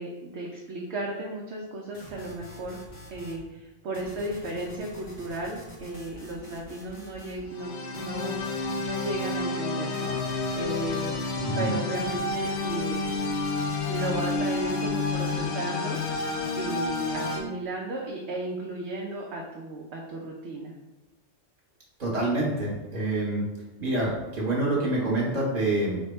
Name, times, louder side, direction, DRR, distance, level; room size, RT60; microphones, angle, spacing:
voice 1, 0.0-2.8 3.1-10.1 10.5-11.2 11.6-13.2 13.9-16.0 16.6-20.7, right 2 dB, 65° right, -2 dB, 0.8 m, -35 dB
sound 1, 1.9-3.4 3.9-7.4 7.9-9.4 9.9-11.4 11.9-15.4 15.9-17.4, equal, 30° left, 0.7 m, -46 dB
sound 2, 7.5-17.4, left 3 dB, 65° left, 0.8 m, -30 dB
voice 2, 11.4-11.8 22.0-23.5 23.8-26.0, right 2 dB, 35° right, -5 dB, 1.2 m, -27 dB
3.4 x 2.2 x 4.3 m, 1.1 s
omnidirectional pair, 1.3 m